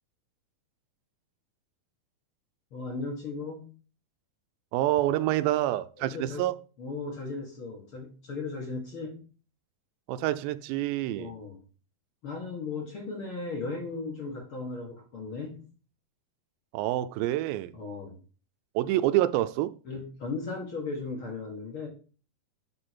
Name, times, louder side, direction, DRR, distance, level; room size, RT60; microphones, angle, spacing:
voice 1, 2.7-3.7 6.1-6.5 6.8-9.2 11.1-11.6 12.2-15.6 17.7-18.2 19.9-21.9, left 3 dB, 50° left, 1.9 m, -36 dB
voice 2, 4.7-6.6 10.1-11.3 16.7-17.7 18.8-19.8, right 14 dB, 85° right, 2.4 m, -27 dB
11.0 x 3.8 x 4.4 m
omnidirectional pair, 4.1 m